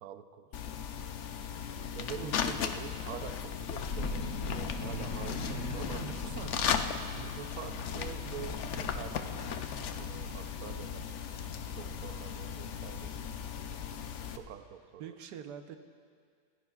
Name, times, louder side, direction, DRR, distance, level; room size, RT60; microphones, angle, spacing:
voice 1, 0.0-0.8 1.9-6.1 7.1-9.5 10.0-11.2 11.7-13.3 14.3-15.2, right 8 dB, 70° right, 9 dB, 1.0 m, -46 dB
sound 1, 0.5-14.4, left 7 dB, 60° left, 0.8 m, -37 dB
voice 2, 2.2-2.6 5.9-6.8 15.0-15.8, right 7 dB, 85° right, 7 dB, 1.4 m, -45 dB
sound 2, 3.9-13.8, left 2 dB, 90° left, 2.0 m, -42 dB
24.5 x 16.5 x 2.4 m, 2.1 s
omnidirectional pair, 1.7 m